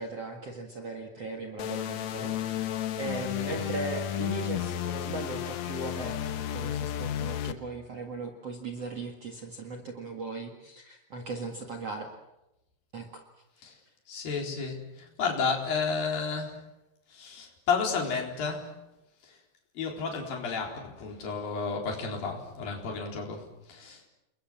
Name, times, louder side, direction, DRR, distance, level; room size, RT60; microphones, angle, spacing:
voice 1, 0.0-12.1 12.9-13.2, right 3 dB, 45° right, 3 dB, 2.4 m, -38 dB
sound 1, 1.6-7.5, left 10 dB, 90° left, 1.5 m, -32 dB
voice 2, 14.1-16.7 17.1-18.8 19.2-19.4 19.8-24.0, left 5 dB, 60° left, 1 dB, 5.7 m, -32 dB
29.5 x 22.0 x 7.5 m, 0.93 s
omnidirectional pair, 4.8 m